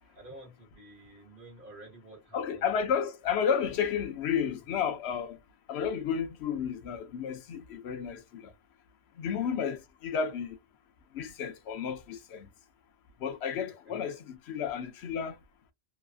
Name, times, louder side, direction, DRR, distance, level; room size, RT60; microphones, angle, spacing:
voice 1, 0.0-2.9 9.3-9.5 13.7-14.0, right 1 dB, 55° right, 1.6 m, -51 dB
voice 2, 2.3-5.4 5.7-8.5 9.2-10.6 11.1-12.5 13.2-15.4, left 7 dB, 90° left, 0.9 m, -32 dB
3.1 x 2.4 x 2.3 m
omnidirectional pair, 1.1 m